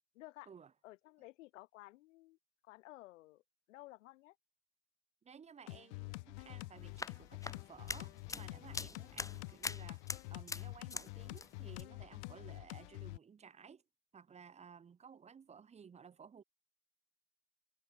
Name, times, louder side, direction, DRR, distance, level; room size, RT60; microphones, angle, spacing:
voice 1, 0.1-0.5 0.8-2.4 2.6-3.4 3.7-4.4, left 18 dB, 80° left, 6.4 m, -55 dB
voice 2, 5.2-10.0 10.3-13.8 14.1-16.4, right 6 dB, 15° right, 2.9 m, -57 dB
sound 1, 5.7-13.2, left 26 dB, 65° left, 2.2 m, -47 dB
sound 2, 6.8-11.1 11.3-11.8, left 4 dB, 10° left, 1.3 m, -44 dB
supercardioid pair, 160°, 37 cm